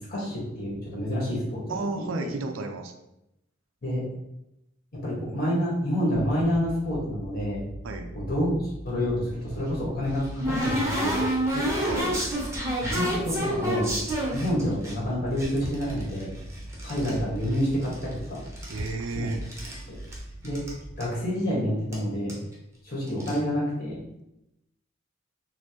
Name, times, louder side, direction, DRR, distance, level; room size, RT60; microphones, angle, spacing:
voice 1, 0.0-1.6 2.0-2.3 3.8-4.0 4.9-7.6 8.1-11.2 12.8-13.9 14.3-16.3 16.8-18.4 19.1-19.3 19.9-20.0 20.4-20.6 21.0-22.4 22.8-24.0, equal, 50° left, -5 dB, 1.4 m, -28 dB
voice 2, 1.7-2.9 7.8-8.1 11.5-12.1 18.7-19.4, right 3 dB, 75° right, 5 dB, 0.4 m, -33 dB
sound 1, 6.1-21.0, right 1 dB, ahead, 1.3 m, -42 dB
sound 2, 9.5-14.9 15.4-17.2 17.4-18.2 18.5-19.8 20.1-20.2 20.4-20.7 21.0-21.1 21.9-22.0 22.3-22.5 23.1-23.4, equal, 15° right, 0.8 m, -29 dB
4.3 x 2.0 x 2.9 m, 0.86 s
head